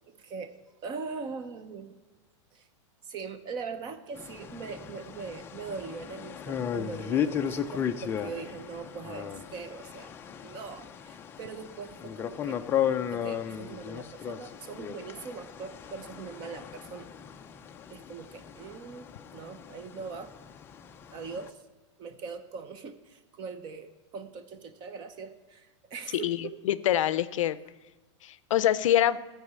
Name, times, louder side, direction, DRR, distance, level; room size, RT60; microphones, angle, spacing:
voice 1, 0.1-0.6 0.8-1.9 2.5-2.7 3.0-10.1 10.4-12.6 13.1-17.1 17.9-20.3 21.1-21.6 22.0-26.6, right 5 dB, 30° right, 11 dB, 0.7 m, -41 dB
sound 1, 4.1-21.5, left 9 dB, 15° left, 0.4 m, -35 dB
voice 2, 26.7-27.6 28.2-29.2, left 12 dB, 80° left, 16 dB, 0.5 m, -25 dB
12.5 x 4.8 x 8.1 m, 1.2 s
supercardioid pair, 155°, 16 cm